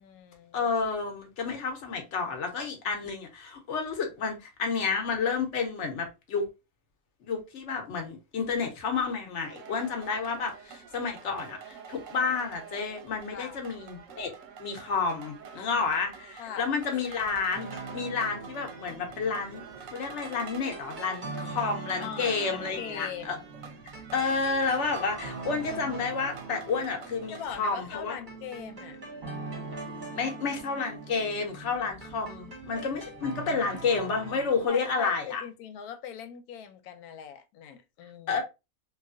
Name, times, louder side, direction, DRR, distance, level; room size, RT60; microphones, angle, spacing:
voice 1, 0.0-0.7 13.3-13.6 15.6-15.9 16.4-16.7 22.0-23.5 27.3-29.0 34.7-38.4, left 8 dB, 90° left, 1.1 m, -41 dB
voice 2, 0.5-6.5 7.2-14.3 14.6-17.7 17.9-19.6 19.9-23.4 24.1-28.2 30.1-35.4 38.3-38.4, left 5 dB, 60° left, 1.0 m, -30 dB
sound 1, 9.4-27.5, right 6 dB, 65° right, 0.9 m, -47 dB
sound 2, 17.5-34.7, right 3 dB, 40° right, 0.9 m, -42 dB
3.1 x 2.4 x 2.5 m
omnidirectional pair, 1.5 m